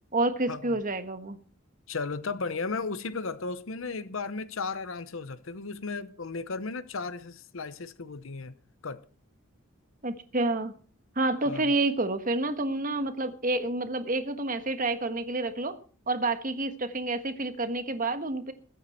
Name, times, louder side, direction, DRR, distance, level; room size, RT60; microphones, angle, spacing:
voice 1, 0.1-1.4 10.0-10.7 11.1-15.7 16.1-18.5, right 2 dB, 40° right, 1.4 m, -29 dB
voice 2, 1.9-8.5 8.8-9.0 11.4-11.7, left 4 dB, 65° left, 0.8 m, -35 dB
21.0 x 9.3 x 4.4 m
head